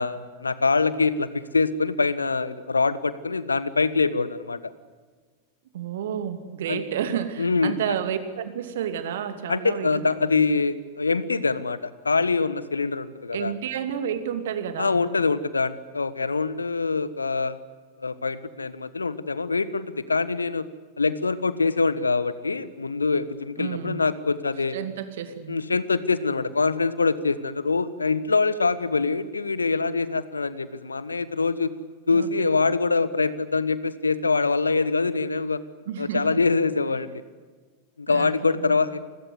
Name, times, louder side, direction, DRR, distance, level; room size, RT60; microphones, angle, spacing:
voice 1, 0.0-4.6 6.7-6.8 7.4-8.0 9.5-13.5 14.8-17.6 18.0-20.6 21.0-24.8 25.5-31.7 32.1-35.6 36.0-37.2 38.0-39.0, left 4 dB, 75° left, 16 dB, 1.3 m, -24 dB
voice 2, 5.7-10.5 13.3-15.0 23.6-24.0 24.7-25.6 32.1-32.6 35.9-36.4 38.1-38.8, right 8 dB, 60° right, 10 dB, 2.7 m, -31 dB
29.5 x 21.5 x 8.2 m, 1.4 s
figure-of-eight pair, 90°, 0 cm